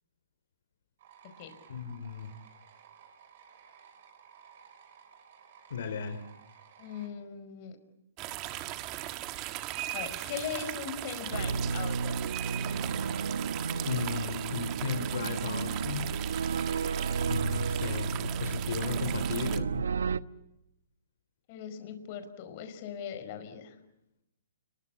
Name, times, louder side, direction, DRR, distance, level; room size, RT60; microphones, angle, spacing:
orange juice glass ring, 1.0-7.1, right 7 dB, 55° right, 7.0 m, -56 dB
voice 1, 1.7-2.3 5.7-6.2 13.8-16.1 17.3-19.8, left 5 dB, 70° left, 8 dB, 3.9 m, -35 dB
voice 2, 6.8-7.8 9.9-12.2 21.5-23.8, left 8 dB, 40° left, 9 dB, 5.1 m, -39 dB
sound 1, 8.2-19.6, right 15 dB, 30° right, 1.7 m, -39 dB
sound 2, 11.3-20.2, right 5 dB, 85° right, 0.9 m, -32 dB
30.0 x 23.0 x 8.4 m, 0.87 s
hypercardioid pair, 145°, 0 cm